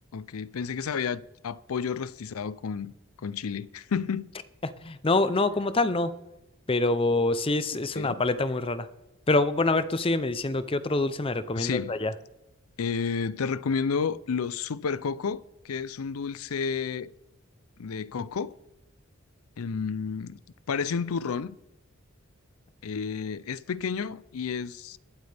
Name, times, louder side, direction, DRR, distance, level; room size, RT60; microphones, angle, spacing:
voice 1, 0.1-2.9 3.2-4.3 7.9-8.2 11.6-11.9 12.8-17.1 17.8-18.5 19.6-20.4 20.7-21.6 22.8-25.0, left 6 dB, 90° left, 0.5 m, -31 dB
voice 2, 4.8-6.1 6.7-8.9 9.3-12.1, left 2 dB, 25° left, 0.6 m, -25 dB
22.5 x 8.0 x 3.4 m
head